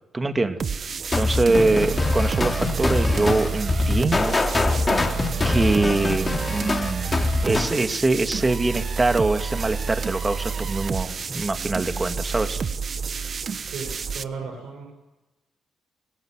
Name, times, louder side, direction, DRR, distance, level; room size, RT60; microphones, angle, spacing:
voice 1, 0.1-0.6 1.2-4.3 5.4-7.2 7.4-12.6, right 2 dB, 25° right, 8 dB, 2.5 m, -23 dB
sound 1, 0.6-14.2, right 5 dB, 50° right, 1.2 m, -29 dB
sound 2, 1.1-7.8, left 3 dB, 30° left, 3.4 m, -23 dB
voice 2, 1.5-1.9 13.7-14.8, right 5 dB, 85° right, 1 dB, 6.3 m, -34 dB
27.5 x 17.5 x 9.3 m, 1.1 s
supercardioid pair, 65°, 0 cm